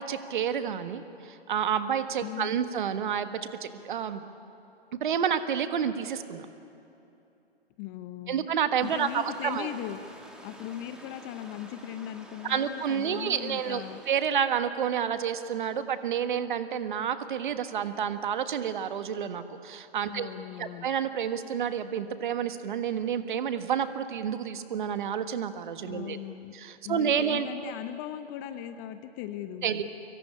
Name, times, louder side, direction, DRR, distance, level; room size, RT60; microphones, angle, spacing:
voice 1, 0.0-4.2 5.0-6.5 8.3-9.7 12.4-20.3 20.6-26.2 26.5-27.7 29.6-29.8, right 8 dB, 50° right, 10 dB, 1.6 m, -29 dB
voice 2, 2.2-2.6 7.8-8.5 8.8-10.0 10.4-14.0 20.1-20.9 25.9-26.5 26.8-29.8, left 11 dB, 20° left, 11 dB, 0.6 m, -38 dB
sound 1, 8.8-14.1, equal, ahead, 2.3 m, -50 dB
24.5 x 22.5 x 9.9 m, 2.8 s
figure-of-eight pair, 125°, 32 cm